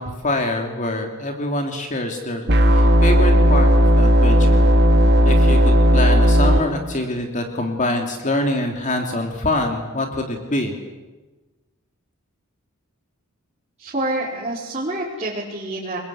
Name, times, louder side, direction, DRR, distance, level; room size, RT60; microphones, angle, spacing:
voice 1, 0.0-3.7 4.0-4.7 5.2-10.7, left 1 dB, 35° left, 3 dB, 2.8 m, -25 dB
sound 1, 2.5-6.6, equal, 50° right, 2.7 m, -14 dB
voice 2, 13.8-16.0, right 1 dB, 30° right, -7 dB, 4.8 m, -27 dB
28.5 x 21.5 x 8.6 m, 1.2 s
head